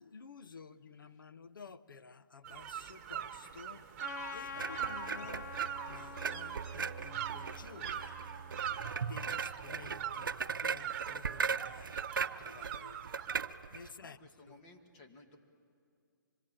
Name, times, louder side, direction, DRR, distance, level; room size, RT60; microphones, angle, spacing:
voice 1, 0.0-3.9 4.3-5.5 5.9-8.2 9.0-13.0 13.7-14.2 14.5-14.6, left 5 dB, 80° left, 12 dB, 0.9 m, -53 dB
sound 1, 2.4-13.5, right 10 dB, 35° right, 1.5 m, -43 dB
Trumpet, 4.0-8.7, left 5 dB, 55° left, 0.8 m, -47 dB
sound 2, 4.5-13.9, right 6 dB, 80° right, 0.7 m, -39 dB
voice 2, 14.0-15.4, left 2 dB, 30° left, 4 dB, 2.3 m, -58 dB
25.5 x 22.5 x 8.8 m, 2.3 s
hypercardioid pair, 145°, 11 cm